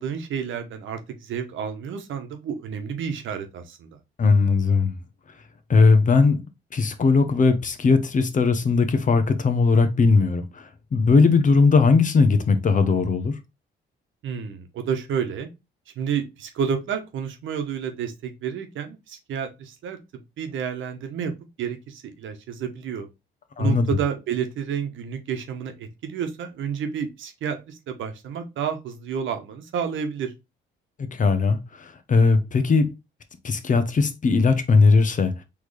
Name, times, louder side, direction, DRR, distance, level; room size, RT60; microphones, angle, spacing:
voice 1, 0.0-3.9 14.2-15.5 16.0-20.0 20.4-21.3 21.6-23.1 23.6-30.3, right 7 dB, 75° right, 1.0 m, -30 dB
voice 2, 4.2-4.9 5.7-6.4 6.7-10.6 10.9-13.3 23.6-23.9 31.0-32.9 33.4-35.3, left 4 dB, 40° left, 0.9 m, -19 dB
4.0 x 3.2 x 3.2 m
cardioid pair, 90°, 20 cm